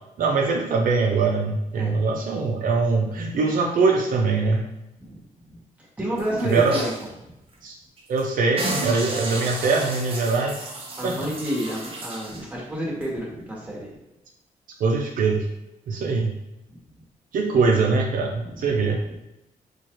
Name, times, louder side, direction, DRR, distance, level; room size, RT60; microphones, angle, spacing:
voice 1, 0.2-4.6 6.4-6.8 7.6-7.7 8.1-10.7 11.0-11.3 14.8-15.5 15.9-16.3 17.3-19.0, right 4 dB, 75° right, 1 dB, 0.5 m, -22 dB
voice 2, 6.0-6.9 11.0-13.9 16.7-16.8 18.4-18.8 19.1-19.2, equal, 10° right, -5 dB, 1.3 m, -30 dB
sound 1, 6.2-7.1 7.5-7.6 8.0-8.2 8.6-12.4 13.0-13.1, right 2 dB, 40° right, 0.7 m, -32 dB
4.4 x 2.4 x 3.0 m, 0.90 s
wide cardioid pair, 125°, 14 cm